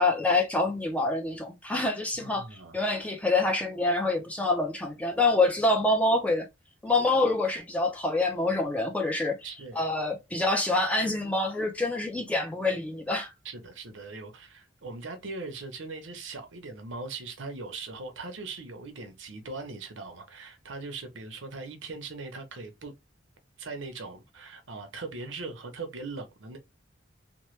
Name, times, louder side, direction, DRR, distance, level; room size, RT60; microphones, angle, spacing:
voice 1, 0.0-2.5 2.7-6.5 6.8-9.4 9.8-13.3, left 2 dB, 5° left, 0.5 m, -26 dB
voice 2, 2.1-2.8 9.4-9.9 13.4-22.9 23.6-26.6, right 3 dB, 75° right, 0.8 m, -40 dB
2.9 x 2.1 x 3.1 m
head